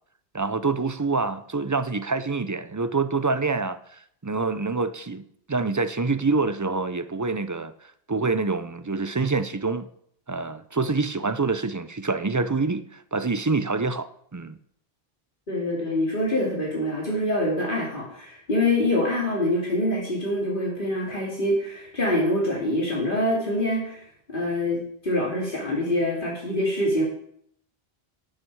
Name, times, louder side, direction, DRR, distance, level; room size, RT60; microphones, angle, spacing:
voice 1, 0.3-9.9 10.3-14.6, right 3 dB, 25° right, 0.4 m, -26 dB
voice 2, 15.5-24.0 24.3-27.0, left 1 dB, 55° left, 2.6 m, -25 dB
12.0 x 8.8 x 4.7 m
omnidirectional pair, 1.0 m